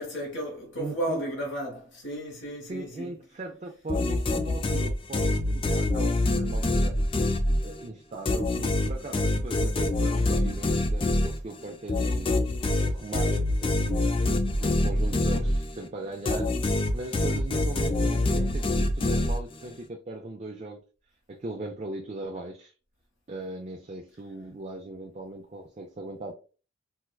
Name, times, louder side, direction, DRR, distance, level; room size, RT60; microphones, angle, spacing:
voice 1, 0.0-3.1, right 1 dB, 85° left, 1.1 m, -33 dB
voice 2, 0.8-1.3 2.7-7.0 7.6-12.3 12.8-14.1 14.6-16.6 16.9-20.8 21.3-22.7 23.3-26.3, right 2 dB, 35° right, 0.4 m, -39 dB
sound 1, 3.9-7.9 8.3-15.9 16.3-19.7, left 2 dB, 30° left, 0.4 m, -25 dB
4.4 x 2.2 x 2.2 m
head